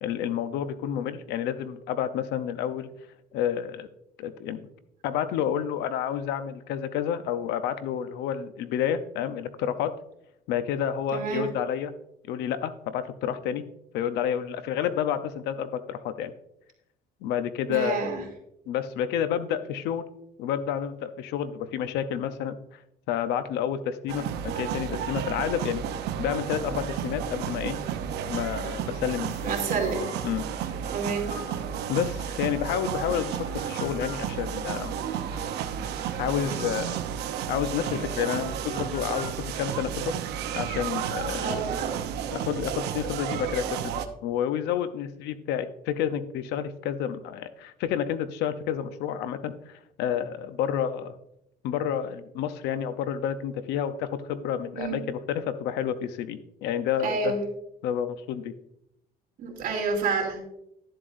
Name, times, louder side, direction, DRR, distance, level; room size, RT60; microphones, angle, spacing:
voice 1, 0.0-2.9 3.3-3.9 4.2-4.6 5.0-9.9 10.5-11.9 12.2-13.6 13.9-16.3 17.2-18.1 18.7-20.1 20.4-22.6 23.1-25.8 26.2-27.8 28.3-29.5 30.2-30.4 31.9-35.0 36.2-37.0 37.5-40.1 40.5-41.6 42.3-51.1 51.6-57.3 57.8-58.5, left 9 dB, 90° left, 11 dB, 0.7 m, -30 dB
voice 2, 11.1-11.5 17.7-18.2 29.4-30.0 30.9-31.3 41.3-42.0 54.7-54.9 57.0-57.4 59.4-60.4, right 4 dB, 60° right, 1 dB, 2.8 m, -29 dB
sound 1, 24.1-44.1, right 9 dB, 80° right, 0.8 m, -32 dB
sound 2, 29.3-40.1, left 4 dB, 45° left, 3.6 m, -48 dB
12.0 x 7.6 x 2.6 m, 0.80 s
cardioid pair, 110°, 17 cm